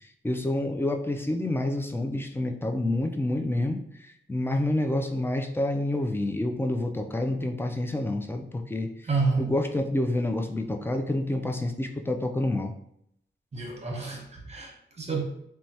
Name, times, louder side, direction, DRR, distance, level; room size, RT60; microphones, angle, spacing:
voice 1, 0.2-3.8 4.3-8.9 9.4-12.7, left 1 dB, 10° left, 5 dB, 0.3 m, -28 dB
voice 2, 9.0-9.5 13.5-15.2, right 4 dB, 30° right, 0 dB, 0.9 m, -29 dB
3.2 x 2.2 x 2.7 m, 0.74 s
cardioid pair, 65°, 20 cm